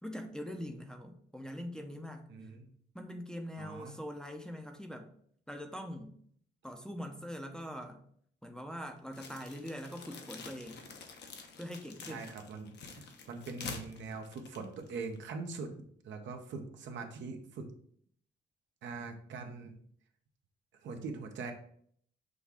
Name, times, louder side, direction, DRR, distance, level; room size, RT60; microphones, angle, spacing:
voice 1, 0.0-2.3 2.9-5.1 5.5-6.2 6.6-8.0 8.4-10.8 11.6-12.3, equal, 5° left, 3 dB, 0.6 m, -43 dB
voice 2, 2.3-2.7 3.6-3.9 12.0-15.7 16.0-17.7 18.8-19.8 20.8-21.5, right 4 dB, 65° right, 5 dB, 0.8 m, -42 dB
sound 1, 9.1-15.2, left 4 dB, 60° left, 0.8 m, -48 dB
6.3 x 2.3 x 3.5 m, 0.62 s
cardioid pair, 90°, 20 cm